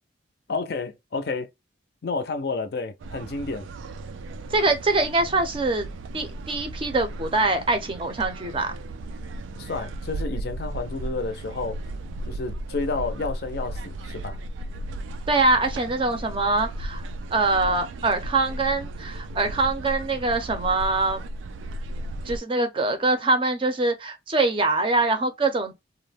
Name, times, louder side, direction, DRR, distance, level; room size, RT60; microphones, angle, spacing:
voice 1, 0.5-1.5 2.0-3.7 9.6-11.8 12.3-14.4, left 3 dB, 55° left, 0.4 m, -30 dB
sound 1, 3.0-22.4, right 1 dB, 90° right, 0.3 m, -35 dB
voice 2, 4.5-5.9 6.1-8.8 15.3-17.0 17.3-21.3 22.3-25.7, right 3 dB, 30° right, 0.5 m, -23 dB
2.4 x 2.1 x 3.3 m
head